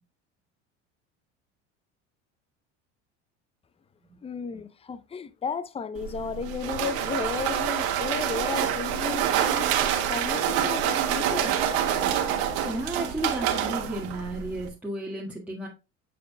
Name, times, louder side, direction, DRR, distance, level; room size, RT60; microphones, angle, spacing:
voice 1, 4.2-9.7 10.1-11.6, left 6 dB, 15° left, 0.5 m, -34 dB
Serving popcorn in a bowl, 5.9-14.7, right 10 dB, 75° right, 1.8 m, -27 dB
voice 2, 12.6-15.7, right 1 dB, 5° right, 1.7 m, -33 dB
9.3 x 6.7 x 2.2 m
hypercardioid pair, 85°, 34 cm